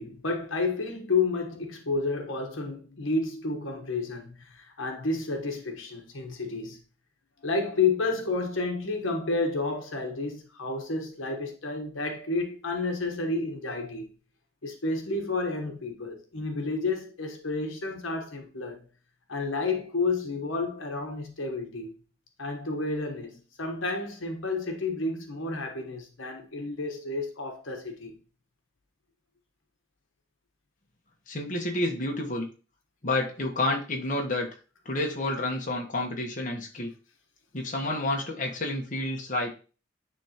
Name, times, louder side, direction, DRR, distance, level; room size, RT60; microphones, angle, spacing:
voice 1, 0.0-6.8 7.4-14.1 14.6-18.8 19.3-21.9 22.4-28.2, left 3 dB, 85° left, 1.2 m, -30 dB
voice 2, 31.3-32.5 33.0-34.5 34.8-36.9 37.5-39.5, left 2 dB, 40° left, 1.2 m, -29 dB
9.7 x 3.5 x 2.9 m
head